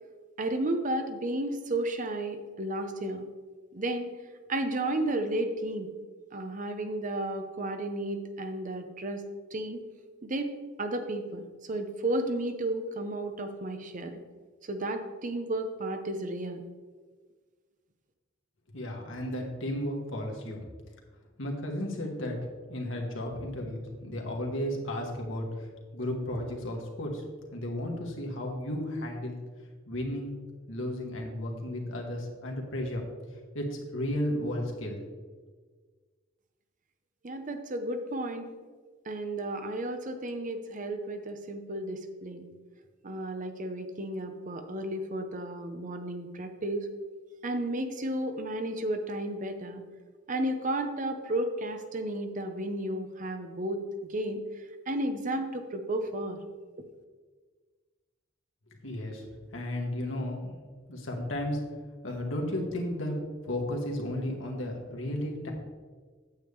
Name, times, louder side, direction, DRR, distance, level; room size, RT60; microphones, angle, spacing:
voice 1, 0.4-3.2 3.7-4.1 4.5-5.9 6.3-9.2 9.5-9.8 10.2-10.5 10.8-14.2 14.6-16.6 37.2-38.5 39.1-42.5 43.0-46.9 47.4-49.8 50.3-53.8 54.1-54.4 54.9-56.4, right 1 dB, 40° right, 7 dB, 0.7 m, -33 dB
voice 2, 18.7-20.6 21.4-22.4 22.7-25.7 25.9-27.2 27.5-29.4 29.9-30.3 30.7-33.0 33.5-35.0 58.8-59.2 59.5-60.6 60.9-61.6 62.0-63.2 63.5-65.5, left 1 dB, 75° left, 0 dB, 1.7 m, -33 dB
9.0 x 8.1 x 3.6 m, 1.5 s
head